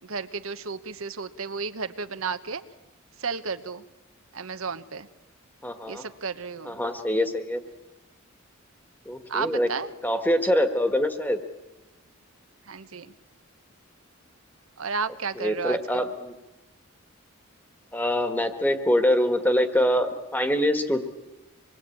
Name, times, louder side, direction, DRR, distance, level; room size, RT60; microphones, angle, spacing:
voice 1, 0.0-2.6 3.2-3.8 4.3-5.1 5.9-6.8 9.3-9.9 12.7-13.1 14.8-15.8, right 5 dB, 75° right, 10 dB, 1.1 m, -32 dB
voice 2, 5.6-6.0 6.6-7.6 9.0-9.7 10.0-11.4 15.4-16.3 17.9-21.0, equal, 10° left, 7 dB, 1.6 m, -24 dB
26.0 x 21.5 x 8.7 m, 1.0 s
head